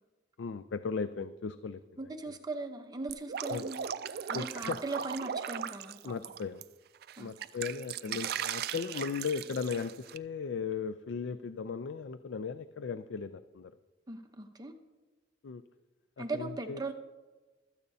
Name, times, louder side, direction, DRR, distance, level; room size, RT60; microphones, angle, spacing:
voice 1, 0.4-1.8 3.5-3.7 4.3-4.8 6.0-6.6 7.2-13.7 15.4-15.6 16.2-16.8, left 5 dB, 70° left, 12 dB, 0.4 m, -37 dB
voice 2, 2.0-3.8 4.3-6.2 7.2-7.5 8.0-8.2 14.1-14.7 16.2-16.9, right 3 dB, 20° right, 5 dB, 0.8 m, -39 dB
Drip, 3.1-6.6 7.0-10.2, right 8 dB, 55° right, 0.3 m, -38 dB
15.5 x 13.0 x 2.7 m, 1.2 s
head